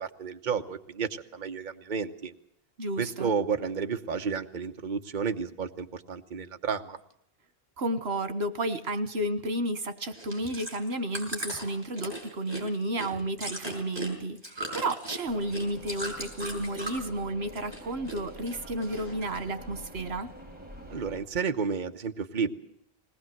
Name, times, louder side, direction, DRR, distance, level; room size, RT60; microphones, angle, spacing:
voice 1, 0.0-2.3 3.0-7.0 20.9-22.5, right 6 dB, 50° right, 6 dB, 1.2 m, -31 dB
voice 2, 2.8-3.3 7.8-20.3, right 1 dB, 90° right, 10 dB, 1.7 m, -32 dB
Chewing mastication, 10.1-17.1 17.4-18.2 18.4-19.4 19.9-20.0, right 1 dB, 25° right, 6.2 m, -38 dB
sound 1, 15.2-21.2, equal, 10° right, 4.2 m, -46 dB
20.5 x 19.0 x 7.8 m, 0.72 s
omnidirectional pair, 1.0 m